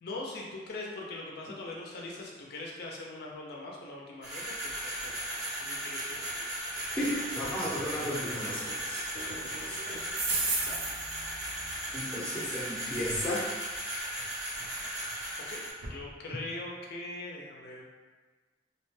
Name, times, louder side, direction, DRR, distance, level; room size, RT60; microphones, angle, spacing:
voice 1, 0.0-6.5 10.6-10.8 15.5-17.8, left 2 dB, 55° left, -2 dB, 0.4 m, -42 dB
sound 1, 4.2-15.7, right 1 dB, 65° right, 1.0 m, -37 dB
sound 2, 5.0-5.3 5.8-5.9 6.2-6.3 6.6-10.0, right 1 dB, 40° right, 0.5 m, -46 dB
voice 2, 7.0-8.6 8.9-9.0 9.7-9.8 11.9-13.4, left 1 dB, 5° left, -8 dB, 0.6 m, -34 dB
sound 3, 10.1-12.0 13.0-13.2 14.2-14.3 14.6-14.7 15.1-15.2 15.8-16.0, right 3 dB, 90° right, 0.6 m, -34 dB
2.8 x 2.1 x 3.1 m, 1.4 s
head